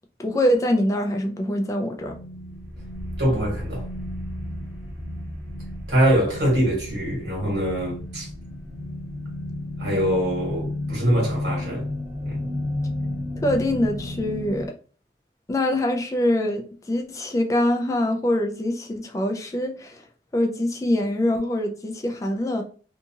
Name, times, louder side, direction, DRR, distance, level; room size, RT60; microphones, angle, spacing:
voice 1, 0.2-2.1 13.4-14.7 15.5-20.0 20.3-22.6, left 1 dB, 20° left, 0.3 m, -24 dB
sound 1, 2.0-14.7, left 1 dB, 5° right, 1.0 m, -32 dB
voice 2, 3.2-3.9 5.9-8.3 9.8-11.9 12.2-12.4, equal, 80° right, 1.5 m, -23 dB
2.7 x 2.3 x 2.7 m
head